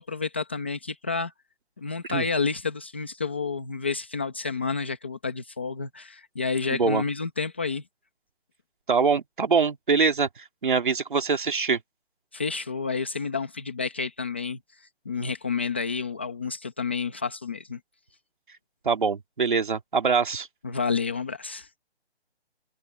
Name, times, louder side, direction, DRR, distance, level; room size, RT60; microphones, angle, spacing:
voice 1, 0.0-1.3 1.8-7.8 12.3-17.8 20.6-21.7, left 5 dB, 10° left, 1.0 m, -30 dB
voice 2, 6.7-7.0 8.9-10.3 10.6-11.8 18.8-20.5, right 5 dB, 50° right, 2.5 m, -23 dB
hypercardioid pair, 180°, 33 cm